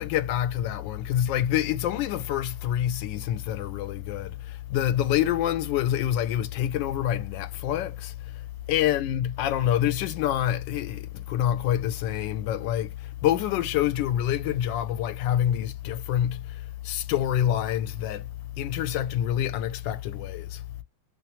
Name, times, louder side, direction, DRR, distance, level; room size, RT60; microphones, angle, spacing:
voice 1, 0.0-20.6, left 11 dB, 85° left, 1.3 m, -27 dB
3.1 x 3.1 x 2.9 m
omnidirectional pair, 2.0 m